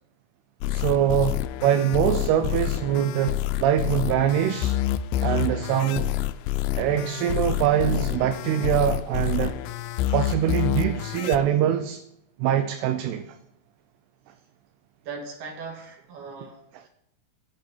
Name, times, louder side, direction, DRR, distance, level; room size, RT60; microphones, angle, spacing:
sound 1, 0.6-11.4, left 14 dB, 85° left, 2.3 m, -27 dB
voice 1, 0.7-4.8 5.2-6.2 6.8-9.6 10.1-12.0 12.4-13.4, right 10 dB, 80° right, 2.5 m, -23 dB
voice 2, 15.0-16.9, right 4 dB, 60° right, 3.1 m, -39 dB
9.4 x 6.0 x 8.5 m
omnidirectional pair, 4.7 m